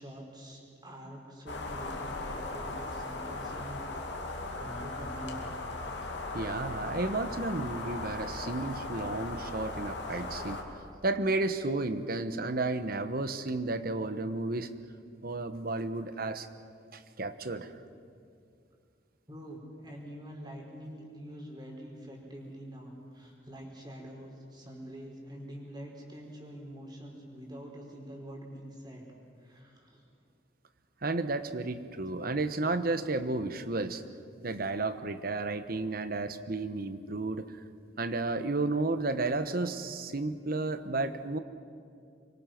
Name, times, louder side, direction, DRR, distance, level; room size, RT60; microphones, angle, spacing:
voice 1, 0.0-3.9 4.6-5.5 10.9-11.0 19.3-29.1 29.4-30.0, equal, 25° right, -1 dB, 4.7 m, -45 dB
sound 1, 1.5-10.6, left 2 dB, 80° left, 2.5 m, -38 dB
voice 2, 6.3-10.6 11.0-14.7 15.2-16.5 16.9-17.7 31.0-34.0 34.4-37.5 38.0-41.4, right 2 dB, 55° right, 11 dB, 1.1 m, -32 dB
25.5 x 23.0 x 6.0 m, 2.3 s
head